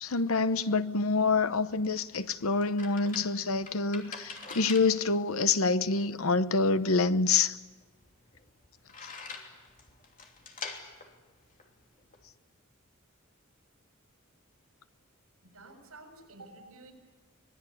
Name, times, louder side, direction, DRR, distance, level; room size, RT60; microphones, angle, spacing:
voice 1, 0.0-7.6, left 4 dB, 80° left, 1.0 m, -27 dB
sound 1, 1.5-12.3, left 4 dB, 40° left, 3.0 m, -46 dB
voice 2, 15.4-16.9, right 2 dB, 85° right, 7.5 m, -51 dB
25.0 x 20.5 x 9.9 m
head